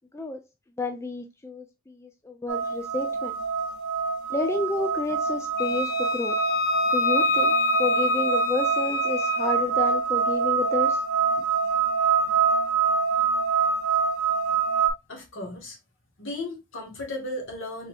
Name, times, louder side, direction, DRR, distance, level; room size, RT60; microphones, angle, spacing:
voice 1, 0.8-3.4 4.3-6.4 6.9-11.0, left 3 dB, 15° left, 0.4 m, -30 dB
sound 1, 2.5-14.9, right 5 dB, 70° right, 0.6 m, -25 dB
Wind instrument woodwind instrument, 5.6-9.6, left 4 dB, 45° left, 0.8 m, -26 dB
voice 2, 15.1-15.8 16.2-17.9, left 1 dB, 60° left, 1.6 m, -35 dB
4.2 x 3.4 x 2.5 m
head